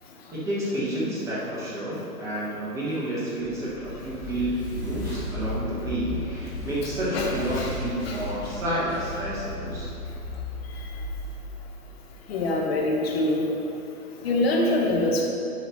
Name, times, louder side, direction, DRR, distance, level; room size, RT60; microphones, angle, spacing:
voice 1, 0.3-9.9, right 1 dB, 5° right, -8 dB, 1.1 m, -30 dB
sound 1, 3.4-12.5, left 2 dB, 15° left, 1.6 m, -35 dB
voice 2, 12.3-13.5 14.2-15.2, left 2 dB, 40° left, 0 dB, 1.1 m, -24 dB
10.5 x 4.8 x 3.0 m, 2.6 s
hypercardioid pair, 145°, 46 cm